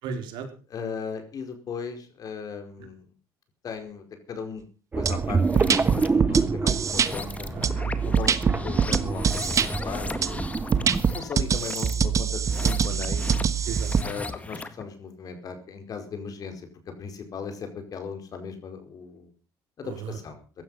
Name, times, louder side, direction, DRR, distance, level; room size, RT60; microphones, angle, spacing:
voice 1, 0.0-0.5 7.5-7.9 10.8-11.2 13.7-14.2 19.8-20.2, right 6 dB, 75° right, 5 dB, 4.3 m, -36 dB
voice 2, 0.7-3.1 3.6-4.6 4.9-7.6 8.0-10.5 10.9-13.2 14.0-16.7 17.0-19.3 19.8-20.4, left 6 dB, 50° left, 6 dB, 4.8 m, -37 dB
sound 1, 4.9-11.0, right 4 dB, 20° right, 0.9 m, -28 dB
sound 2, 5.1-5.2 5.6-7.1 7.6-9.7 10.2-10.3 10.7-14.0, right 7 dB, 40° right, 1.4 m, -23 dB
sound 3, 5.4-6.1 6.8-14.8, left 3 dB, 15° left, 1.8 m, -37 dB
16.0 x 12.5 x 5.7 m, 0.37 s
cardioid pair, 100°, 8 cm